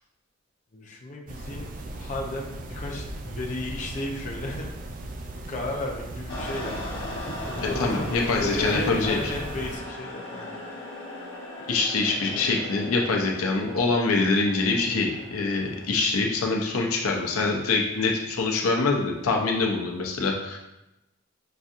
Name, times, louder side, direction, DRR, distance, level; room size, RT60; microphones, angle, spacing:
voice 1, 0.7-4.7 5.3-10.6 12.2-12.5, left 2 dB, 35° left, -1 dB, 0.5 m, -34 dB
sound 1, 1.3-9.8, right 1 dB, 40° right, 0.3 m, -37 dB
sound 2, 6.3-17.8, left 1 dB, 60° left, 1.0 m, -39 dB
voice 2, 7.6-9.3 11.7-20.6, left 3 dB, 90° left, 1 dB, 0.6 m, -25 dB
5.7 x 2.7 x 2.4 m, 0.92 s
head